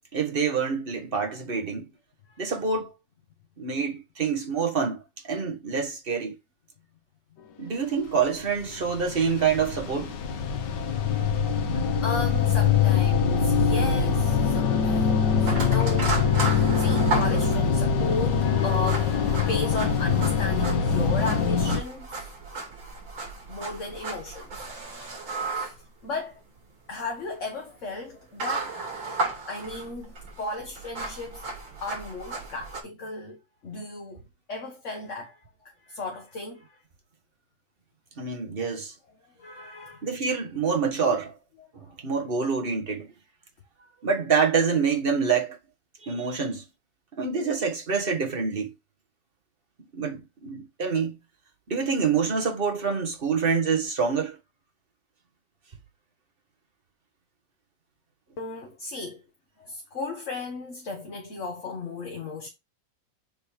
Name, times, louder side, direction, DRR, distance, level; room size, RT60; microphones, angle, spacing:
voice 1, 0.1-1.9 2.4-2.9 3.6-6.3 7.6-10.1 38.2-38.9 40.0-41.3 41.7-43.1 44.0-45.6 46.0-46.6 47.1-48.7 49.9-51.2 51.7-54.4, right 5 dB, 30° right, 1.5 m, -26 dB
sound 1, 8.6-21.8, left 6 dB, 65° left, 1.6 m, -23 dB
voice 2, 12.0-22.6 23.5-24.7 25.5-26.4 26.9-28.9 29.5-31.4 31.8-34.2 34.5-36.8 39.4-40.1 41.6-41.9 58.4-59.2 59.6-62.5, left 3 dB, 40° left, 1.6 m, -35 dB
sound 2, 15.4-32.8, right 3 dB, 85° right, 3.7 m, -35 dB
7.3 x 4.0 x 5.1 m
omnidirectional pair, 2.1 m